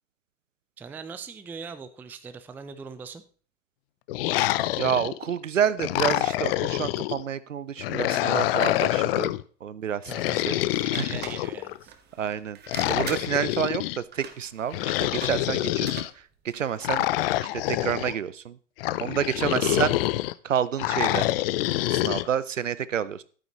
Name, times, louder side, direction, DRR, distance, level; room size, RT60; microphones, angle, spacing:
voice 1, 0.8-3.2 10.1-11.9 19.5-19.8, right 5 dB, 5° right, 11 dB, 0.4 m, -41 dB
sound 1, 4.1-5.3 5.8-7.2 7.8-9.4 10.1-11.8 12.7-14.0 14.7-16.1 16.8-18.1 18.8-20.3 20.8-22.3, left 16 dB, 50° left, 0.5 m, -26 dB
voice 2, 4.8-9.3 9.6-10.1 10.4-10.6 11.0-11.1 12.2-12.6 12.9-16.0 16.4-17.0 17.5-18.6 19.0-20.0 20.4-21.3 21.9-23.2, right 8 dB, 90° right, 17 dB, 0.6 m, -28 dB
sound 2, 10.6-17.0, right 7 dB, 25° right, 1.2 m, -44 dB
11.5 x 9.1 x 3.0 m, 0.42 s
figure-of-eight pair, 90°, 37 cm